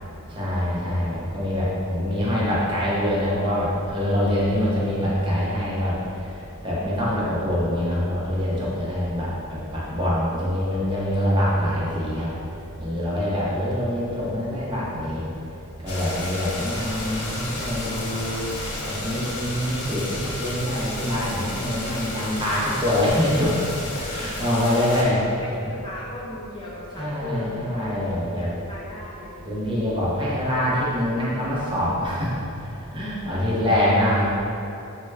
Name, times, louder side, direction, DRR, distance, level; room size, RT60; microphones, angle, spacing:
voice 1, 0.3-5.9 6.6-12.3 12.8-15.2 15.8-18.4 19.0-23.6 24.1-25.2 27.0-28.5 29.5-32.3 32.9-34.3, left 1 dB, 20° right, -7 dB, 0.6 m, -24 dB
voice 2, 6.7-7.3 21.3-21.8 24.3-25.0 25.4-25.6 25.8-27.7 28.2-29.4 33.2-33.7, left 1 dB, 20° left, -6 dB, 0.3 m, -38 dB
sound 1, 15.9-25.0, left 1 dB, 80° left, 0.6 m, -32 dB
3.2 x 2.2 x 3.3 m, 2.8 s
head